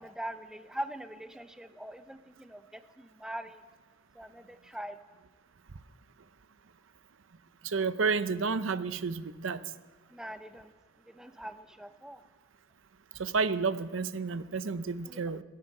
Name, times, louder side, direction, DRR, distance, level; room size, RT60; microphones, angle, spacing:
voice 1, 0.0-3.6 4.1-5.0 10.1-10.7 11.1-12.2 15.0-15.2, right 1 dB, 5° right, 10 dB, 0.7 m, -42 dB
voice 2, 7.6-9.6 13.2-15.4, right 4 dB, 75° right, 14 dB, 0.7 m, -30 dB
26.0 x 9.5 x 5.4 m, 1.3 s
head